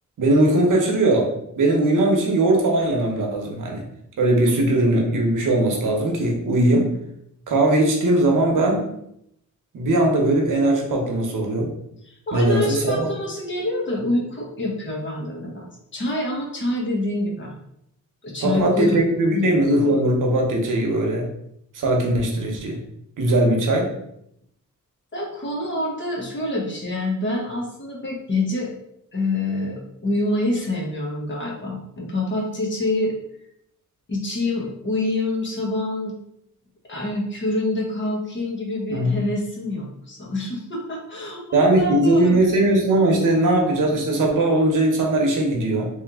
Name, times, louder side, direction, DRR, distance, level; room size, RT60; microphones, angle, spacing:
voice 1, 0.2-1.3 1.6-3.8 4.2-6.9 7.5-8.8 9.7-11.7 12.3-13.1 18.4-21.2 21.7-22.8 23.2-23.9 38.9-39.2 41.5-45.9, right 1 dB, 75° right, 0 dB, 1.0 m, -19 dB
voice 2, 12.0-17.5 18.2-19.0 19.3-19.5 25.1-28.7 29.1-33.1 34.1-36.1 36.9-42.6, left 1 dB, 35° left, -2 dB, 1.1 m, -26 dB
3.3 x 2.9 x 3.5 m, 0.76 s
wide cardioid pair, 135°, 32 cm